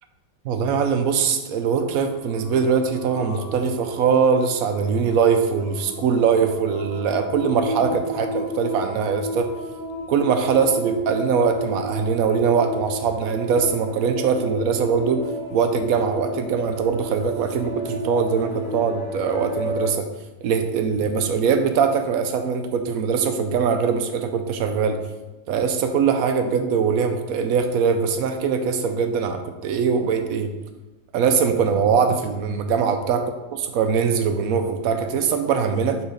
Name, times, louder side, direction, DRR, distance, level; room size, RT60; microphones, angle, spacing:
voice 1, 0.4-9.5 10.1-15.2 15.5-20.1 20.4-25.0 25.5-30.5 31.1-33.2 33.5-36.0, right 6 dB, 75° right, 6 dB, 0.8 m, -22 dB
sound 1, 1.9-19.9, equal, 10° left, 1.2 m, -33 dB
5.7 x 3.7 x 5.0 m, 1.1 s
omnidirectional pair, 2.0 m